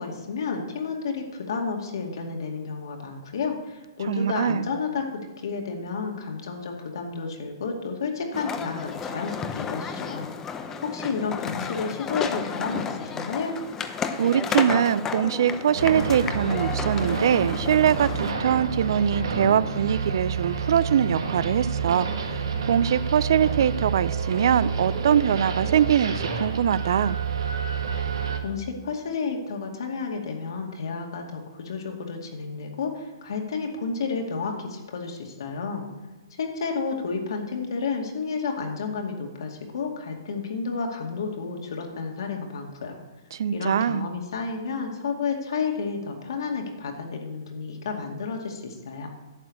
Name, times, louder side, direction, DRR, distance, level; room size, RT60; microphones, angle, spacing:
voice 1, 0.0-10.3 10.8-13.6 28.4-35.9 36.4-43.0 43.5-49.1, left 5 dB, 70° left, 2 dB, 2.3 m, -31 dB
voice 2, 4.1-4.7 14.2-27.2 43.3-44.1, right 9 dB, 65° right, 19 dB, 0.4 m, -23 dB
sound 1, 8.3-18.3, left 6 dB, 15° left, 0.7 m, -32 dB
sound 2, 15.8-28.4, right 5 dB, 80° right, 1.8 m, -29 dB
11.5 x 4.8 x 8.4 m, 1.2 s
hypercardioid pair, 145°, 2 cm